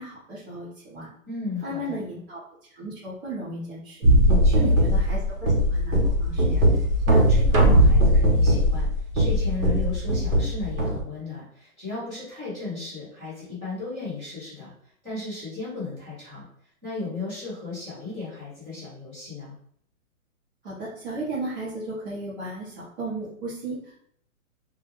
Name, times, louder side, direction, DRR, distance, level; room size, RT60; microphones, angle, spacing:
voice 1, 0.0-1.1 1.6-2.4 2.7-4.0 4.5-6.6 20.6-24.0, right 2 dB, 40° right, -10 dB, 0.8 m, -35 dB
voice 2, 1.3-2.0 4.2-4.7 6.7-8.9 9.1-14.7 15.0-16.4 16.8-19.6, left 3 dB, 5° right, -15 dB, 0.7 m, -35 dB
sound 1, 4.0-11.0, equal, 65° right, 1.0 m, -19 dB
2.3 x 2.1 x 3.0 m, 0.65 s
hypercardioid pair, 170°, 42 cm